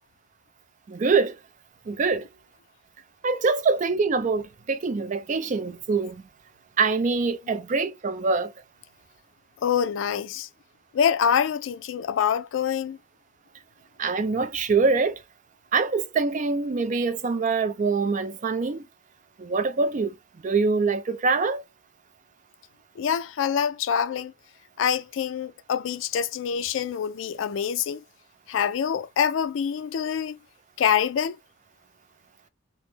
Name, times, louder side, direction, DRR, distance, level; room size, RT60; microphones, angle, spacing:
voice 1, 0.9-1.4 1.9-2.3 3.2-6.2 6.8-8.5 14.0-15.2 15.7-18.8 19.4-20.1 20.4-21.6, right 4 dB, 40° right, 0.4 m, -24 dB
voice 2, 9.6-10.5 10.9-13.0 23.0-24.3 24.8-28.0 28.5-30.4 30.8-31.4, left 8 dB, 70° left, 0.3 m, -25 dB
3.1 x 2.1 x 3.2 m
head